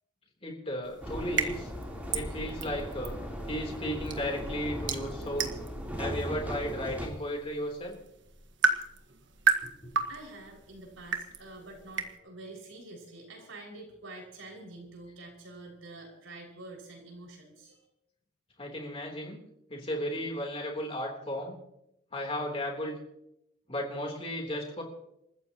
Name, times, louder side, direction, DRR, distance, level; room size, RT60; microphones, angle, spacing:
voice 1, 0.4-1.7 2.1-3.1 3.5-5.6 5.9-8.0 18.6-19.4 19.7-21.6 22.1-23.0 23.7-24.8, equal, 30° left, 1 dB, 3.4 m, -34 dB
sound 1, 0.8-12.2, right 5 dB, 65° right, 1.5 m, -35 dB
sound 2, 1.0-7.1, equal, 10° right, 3.5 m, -38 dB
voice 2, 10.1-17.8, right 2 dB, 85° right, -1 dB, 5.9 m, -47 dB
28.5 x 14.5 x 3.0 m, 0.82 s
head